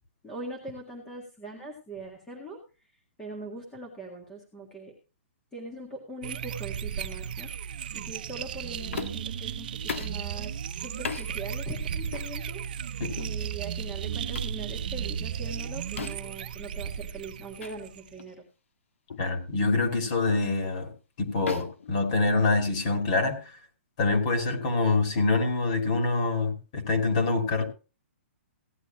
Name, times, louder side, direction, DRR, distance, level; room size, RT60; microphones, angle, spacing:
voice 1, 0.2-2.6 3.2-4.9 5.5-7.5 7.9-10.5 10.8-18.4, right 2 dB, 5° left, 1 dB, 1.6 m, -41 dB
sound 1, 6.2-18.2, right 8 dB, 45° right, 0.8 m, -35 dB
sound 2, 8.9-9.3 9.9-10.2 11.0-11.3 12.1-12.3 13.1-13.4 14.3-14.6 16.0-16.4 17.6-17.7 18.2-18.3 19.1-19.3 20.3-20.5 21.5-22.7, left 6 dB, 80° left, 1.9 m, -37 dB
voice 2, 19.2-20.9 21.2-23.4 24.0-27.6, left 3 dB, 30° left, 5 dB, 2.8 m, -25 dB
16.5 x 10.5 x 3.0 m, 0.32 s
hypercardioid pair, 180°, 7 cm